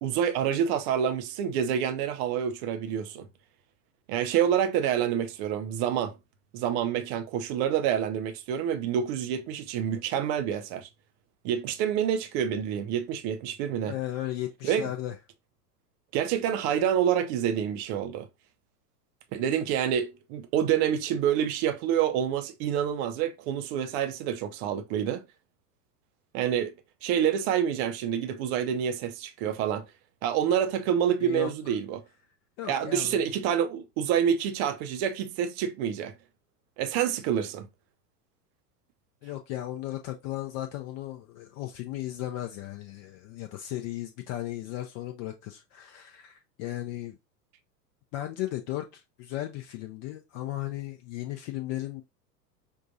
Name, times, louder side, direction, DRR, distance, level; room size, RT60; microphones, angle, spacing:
voice 1, 0.0-3.3 4.1-6.1 6.5-10.9 11.4-13.9 14.6-14.9 16.1-18.3 19.3-25.2 26.3-26.7 27.0-29.8 30.2-32.0 32.7-36.1 36.8-37.7, right 9 dB, 40° right, 0.7 m, -27 dB
voice 2, 13.9-15.1 31.2-31.7 32.6-33.3 39.2-47.2 48.1-52.0, left 14 dB, 35° left, 0.6 m, -36 dB
5.4 x 2.4 x 2.6 m
figure-of-eight pair, 95°, 49 cm